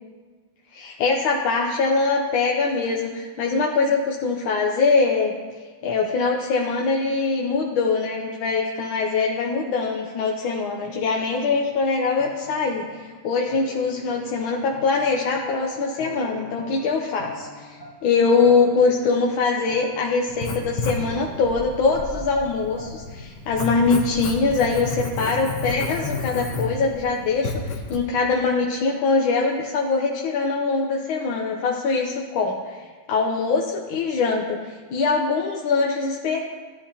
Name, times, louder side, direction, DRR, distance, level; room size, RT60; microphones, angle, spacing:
voice 1, 0.8-5.3 5.8-36.4, left 4 dB, 80° left, 0 dB, 1.6 m, -23 dB
sound 1, 10.8-13.1 13.5-23.2, equal, 35° left, 2.5 m, -42 dB
Writing, 20.3-28.0, left 3 dB, 65° left, 1.6 m, -31 dB
15.0 x 10.5 x 2.9 m, 1.5 s
omnidirectional pair, 2.2 m